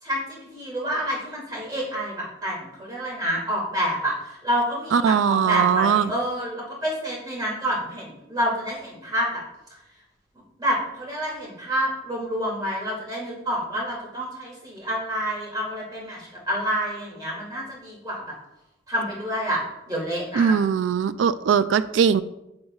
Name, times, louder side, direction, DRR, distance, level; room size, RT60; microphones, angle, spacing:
voice 1, 0.0-9.4 9.7-9.8 10.6-18.3 18.9-19.6 19.9-20.6, equal, 20° right, -4 dB, 2.4 m, -28 dB
voice 2, 4.9-6.1 20.4-22.2, right 7 dB, 90° right, 15 dB, 0.3 m, -20 dB
7.8 x 7.8 x 2.4 m, 0.89 s
head